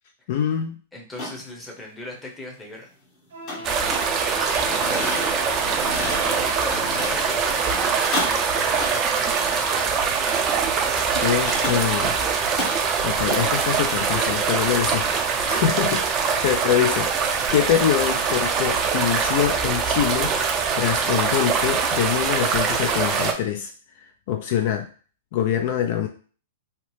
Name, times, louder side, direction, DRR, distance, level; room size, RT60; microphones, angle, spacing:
voice 1, 0.3-0.8 11.2-12.1 13.0-17.1 17.5-20.3 20.7-23.7 24.3-24.9 25.3-26.1, left 10 dB, 55° left, 5 dB, 0.4 m, -24 dB
voice 2, 0.9-2.9 3.5-7.5 8.1-9.5, left 1 dB, 10° left, -2 dB, 0.7 m, -39 dB
sound 1, 1.1-1.4 3.5-4.1 4.5-7.2 7.6-8.3 8.7-8.9 11.1-12.1 12.6-12.8, left 2 dB, 35° left, 0.9 m, -32 dB
Wind instrument woodwind instrument, 3.3-7.8, left 1 dB, 75° right, 0.9 m, -39 dB
sound 2, 3.6-23.3, right 5 dB, 30° right, 0.4 m, -23 dB
2.8 x 2.0 x 3.1 m, 0.40 s
hypercardioid pair, 130°, 0 cm